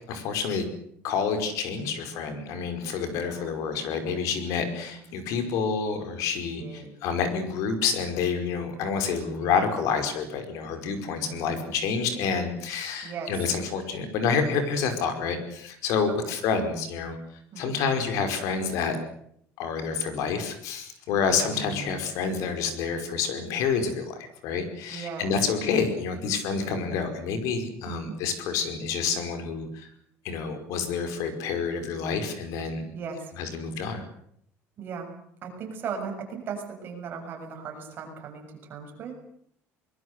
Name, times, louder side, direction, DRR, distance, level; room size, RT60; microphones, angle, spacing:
voice 1, 0.1-0.6 1.0-17.2 17.6-19.0 19.6-29.9 30.3-32.9 33.4-34.0, left 5 dB, 65° left, 8 dB, 5.2 m, -28 dB
voice 2, 3.0-4.3 4.9-5.2 6.6-6.9 8.5-9.1 9.4-9.6 10.9-11.8 13.0-13.3 16.2-16.3 17.5-18.0 21.1-22.0 24.9-25.3 26.6-27.0 27.9-28.2 32.9-33.3 34.8-35.1 35.4-39.2, right 5 dB, 35° right, 3 dB, 7.1 m, -39 dB
24.0 x 21.5 x 8.2 m, 0.68 s
cardioid pair, 170°, 6 cm